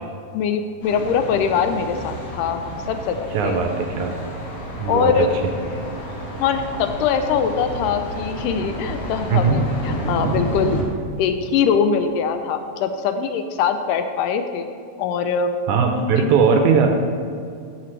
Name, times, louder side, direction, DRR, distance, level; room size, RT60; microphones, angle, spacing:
voice 1, 0.3-3.6 4.9-5.3 6.4-10.8 11.2-14.7 15.0-15.5 16.2-16.3, left 6 dB, 80° left, 8 dB, 2.1 m, -22 dB
Thunder, 0.8-10.8, right 1 dB, 40° left, 3.2 m, -30 dB
voice 2, 3.3-4.2 4.8-5.3 9.3-9.6 15.7-16.9, right 5 dB, 75° right, 3 dB, 1.9 m, -19 dB
13.5 x 6.8 x 3.2 m, 2.4 s
omnidirectional pair, 3.9 m